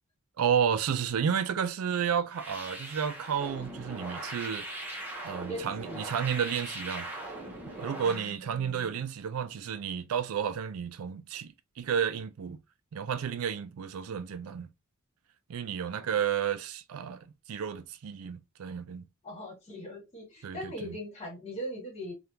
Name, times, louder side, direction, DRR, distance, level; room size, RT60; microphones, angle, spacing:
voice 1, 0.4-4.6 5.2-7.1 7.8-12.6 12.9-14.7 15.5-19.1 20.4-21.0, right 7 dB, 75° right, 0.4 m, -31 dB
sound 1, 2.3-8.4, right 1 dB, 10° right, 0.8 m, -40 dB
voice 2, 5.4-6.1 8.0-9.0 15.8-16.1 19.2-22.1, equal, 30° left, 1.7 m, -41 dB
3.4 x 2.3 x 2.7 m
head